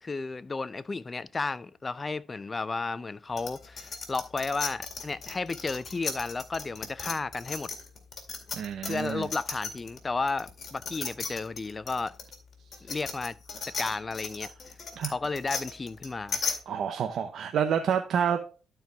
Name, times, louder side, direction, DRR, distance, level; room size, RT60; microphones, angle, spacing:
voice 1, 0.0-7.7 8.9-12.1 12.8-13.4 13.6-14.5 15.1-16.4, left 3 dB, 25° left, 0.4 m, -33 dB
sound 1, 3.4-10.0 10.3-16.6, left 5 dB, 45° left, 2.1 m, -36 dB
voice 2, 8.5-9.3 15.0-15.1 16.7-18.4, right 8 dB, 65° right, 0.7 m, -28 dB
12.0 x 4.6 x 3.4 m
cardioid pair, 90°, 0 cm